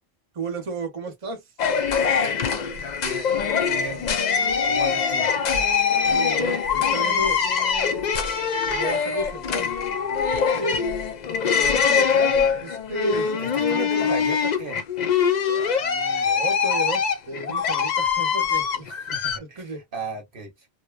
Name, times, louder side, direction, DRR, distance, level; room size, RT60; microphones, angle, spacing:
voice 1, 0.3-1.4 6.1-7.4 8.7-9.7 10.5-10.8 11.6-13.9 15.8-18.8 19.4-19.8, right 2 dB, 35° right, 0.8 m, -32 dB
sound 1, 1.6-19.4, left 6 dB, 55° left, 0.5 m, -23 dB
voice 2, 3.6-4.1 4.6-5.3 13.4-14.8 18.8-20.8, right 3 dB, 55° right, 0.9 m, -36 dB
2.8 x 2.2 x 2.2 m
omnidirectional pair, 1.1 m